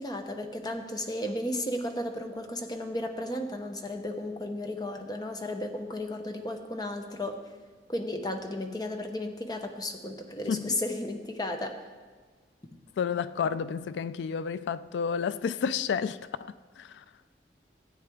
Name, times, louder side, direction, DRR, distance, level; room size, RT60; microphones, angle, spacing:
voice 1, 0.0-7.4 7.9-11.8, left 1 dB, 20° left, 0.8 m, -34 dB
voice 2, 10.5-10.8 13.0-17.0, left 6 dB, 75° left, 0.3 m, -31 dB
16.0 x 8.8 x 3.5 m
head